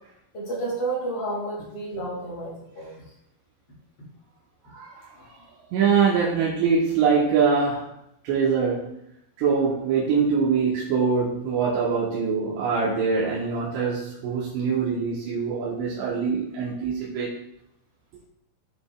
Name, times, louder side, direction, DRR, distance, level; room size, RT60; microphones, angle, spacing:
voice 1, 0.3-2.9 5.1-5.4, right 2 dB, 35° left, -7 dB, 3.6 m, -31 dB
voice 2, 5.7-7.9 8.2-8.9 9.4-17.3, right 5 dB, 70° right, -6 dB, 3.0 m, -23 dB
13.0 x 5.2 x 2.4 m, 0.79 s
omnidirectional pair, 5.7 m